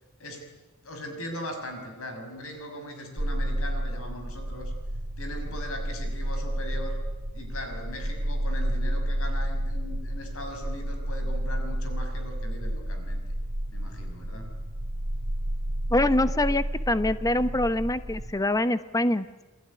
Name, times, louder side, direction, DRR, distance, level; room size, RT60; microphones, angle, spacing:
voice 1, 0.2-0.6 0.8-4.7 5.2-7.0 7.3-13.2 13.7-14.5, left 1 dB, 65° left, 6 dB, 6.0 m, -39 dB
sound 1, 3.2-18.3, equal, 65° right, 2.5 m, -31 dB
voice 2, 15.9-19.4, left 1 dB, 15° left, 12 dB, 1.0 m, -25 dB
29.5 x 20.5 x 9.8 m, 1.1 s
head